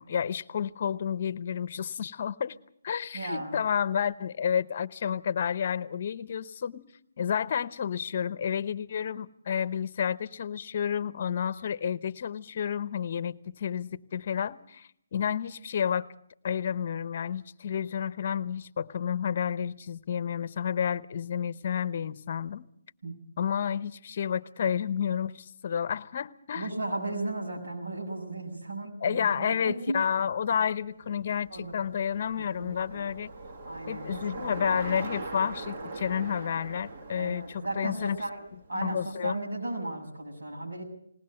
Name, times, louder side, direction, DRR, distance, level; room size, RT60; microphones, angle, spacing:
voice 1, 0.0-2.5 2.8-6.9 7.2-16.1 16.4-22.6 23.4-26.7 29.0-33.3 33.9-38.2 38.7-39.4, left 8 dB, 45° left, 17 dB, 0.8 m, -30 dB
voice 2, 3.1-3.6 23.0-23.1 26.6-30.0 31.5-31.7 32.4-33.1 33.7-34.5 37.2-40.8, right 2 dB, 80° right, 0 dB, 6.9 m, -35 dB
Bicycle, 30.7-39.0, right 3 dB, 45° right, 1.8 m, -41 dB
20.0 x 18.5 x 7.7 m, 0.69 s
hypercardioid pair, 160°, 0 cm